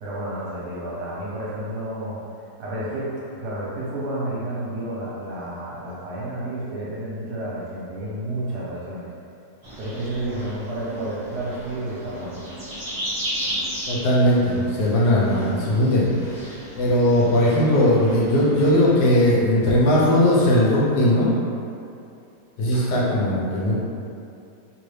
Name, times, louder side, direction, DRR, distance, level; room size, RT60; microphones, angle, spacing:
voice 1, 0.0-2.2 2.6-9.1 9.8-12.5 22.7-23.0, right 1 dB, 70° right, -7 dB, 1.2 m, -31 dB
sound 1, 9.6-18.9, equal, 20° right, 0.7 m, -35 dB
voice 2, 13.9-21.3 22.6-23.7, left 1 dB, 70° left, -5 dB, 1.1 m, -19 dB
3.0 x 2.5 x 3.2 m, 2.6 s
omnidirectional pair, 1.9 m